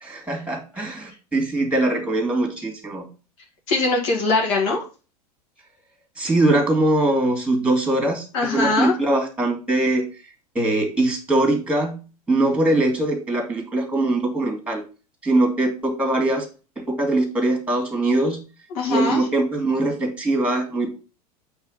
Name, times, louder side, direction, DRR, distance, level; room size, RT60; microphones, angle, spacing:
voice 1, 0.0-3.1 6.2-8.3 8.5-10.0 10.5-12.0 12.3-14.8 15.2-16.4 16.8-18.4 18.9-20.9, right 2 dB, 5° right, 2 dB, 2.3 m, -22 dB
voice 2, 3.7-4.8 8.3-9.0 18.7-19.2, left 3 dB, 55° left, -2 dB, 2.1 m, -21 dB
8.1 x 3.6 x 5.2 m, 0.34 s
figure-of-eight pair, 90°, 20 cm